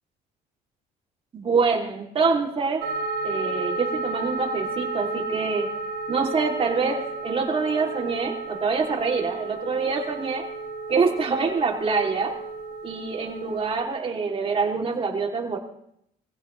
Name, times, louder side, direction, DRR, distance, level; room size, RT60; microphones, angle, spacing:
voice 1, 1.3-2.8 3.2-5.7 6.1-10.4 10.9-12.3 12.8-15.6, right 4 dB, 35° right, 0 dB, 3.4 m, -25 dB
sound 1, 2.8-13.8, right 3 dB, 80° right, 2.1 m, -32 dB
23.0 x 16.0 x 3.4 m, 0.75 s
cardioid pair, 110°, 17 cm